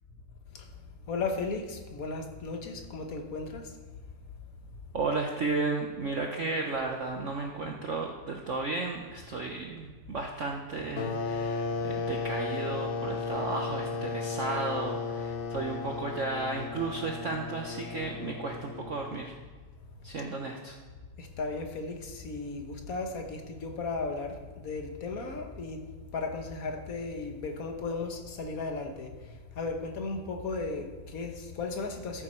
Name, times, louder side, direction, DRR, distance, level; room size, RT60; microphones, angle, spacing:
voice 1, 1.1-3.7 21.2-32.2, left 3 dB, 50° left, 4 dB, 1.2 m, -35 dB
voice 2, 4.9-19.3 20.0-20.8, right 3 dB, 65° right, 1 dB, 0.7 m, -34 dB
sound 1, 11.0-19.3, left 4 dB, 75° left, 0.7 m, -35 dB
13.5 x 6.9 x 4.4 m, 1.4 s
omnidirectional pair, 2.3 m